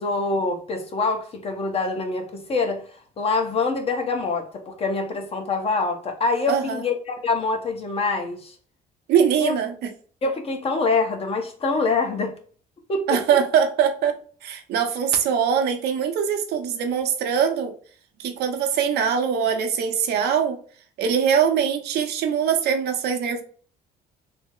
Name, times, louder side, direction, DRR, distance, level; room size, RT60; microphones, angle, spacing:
voice 1, 0.0-8.5 9.4-9.5 10.2-12.3 12.9-13.2, left 3 dB, 35° left, 0.9 m, -25 dB
voice 2, 6.5-6.8 9.1-9.7 13.1-17.7 18.2-20.6 21.0-23.4, right 7 dB, 75° right, 0.7 m, -22 dB
3.4 x 2.1 x 3.6 m
cardioid pair, 110°, 17 cm